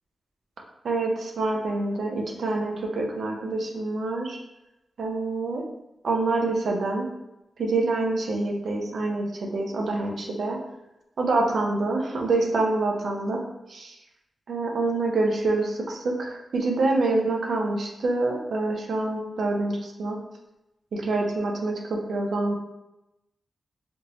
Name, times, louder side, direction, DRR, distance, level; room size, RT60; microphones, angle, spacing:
voice 1, 0.8-4.4 5.0-5.6 6.0-7.1 7.6-10.6 11.2-13.4 13.7-13.9 14.5-20.2 20.9-22.5, right 2 dB, 65° right, 0 dB, 0.6 m, -26 dB
3.5 x 2.9 x 2.6 m, 0.94 s
wide cardioid pair, 170°, 0 cm